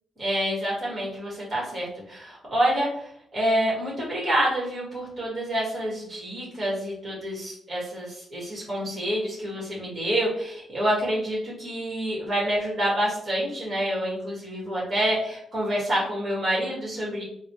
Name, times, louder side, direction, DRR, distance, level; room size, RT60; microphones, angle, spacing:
voice 1, 0.2-17.2, equal, 30° right, -4 dB, 1.4 m, -27 dB
4.0 x 2.1 x 2.9 m, 0.71 s
wide cardioid pair, 160°, 0 cm